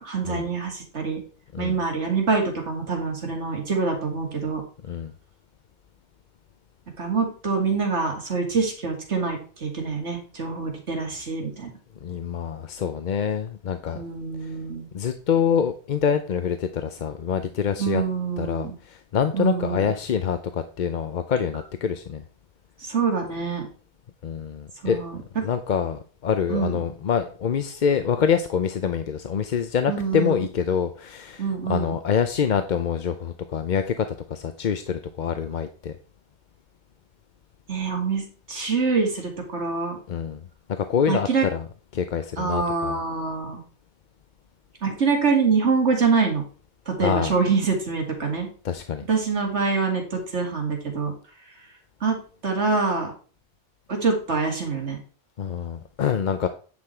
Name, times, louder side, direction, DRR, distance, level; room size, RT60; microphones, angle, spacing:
voice 1, 0.0-1.2 1.6-4.6 7.0-11.7 13.9-14.9 17.8-18.7 19.3-19.9 22.8-23.7 24.8-25.2 26.5-26.8 29.9-30.4 31.4-32.0 37.7-40.0 41.1-41.5 42.4-43.6 44.8-46.4 46.9-48.5 49.1-51.1 52.0-52.2 52.4-53.1 53.9-55.0, right 4 dB, 90° right, 2 dB, 2.6 m, -25 dB
voice 2, 12.0-14.0 14.4-14.5 14.9-18.0 18.4-22.2 24.2-25.0 25.4-35.9 40.1-40.4 40.7-41.6 41.9-43.0 47.0-47.3 48.6-49.1 55.4-56.5, left 7 dB, 50° left, 9 dB, 0.7 m, -26 dB
9.7 x 5.9 x 4.4 m, 0.40 s
omnidirectional pair, 1.1 m